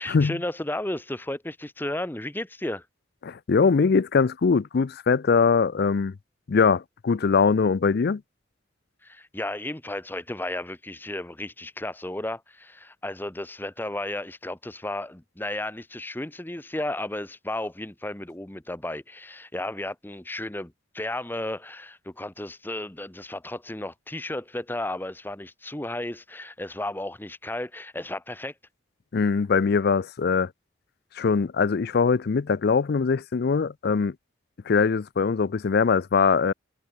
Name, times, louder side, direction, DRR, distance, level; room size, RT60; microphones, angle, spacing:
voice 1, 0.0-2.8 9.0-28.5, left 1 dB, 10° left, 0.9 m, -33 dB
voice 2, 3.2-6.1 6.5-8.2 29.1-30.5 31.2-34.1 34.7-36.5, left 5 dB, 55° left, 0.4 m, -22 dB
head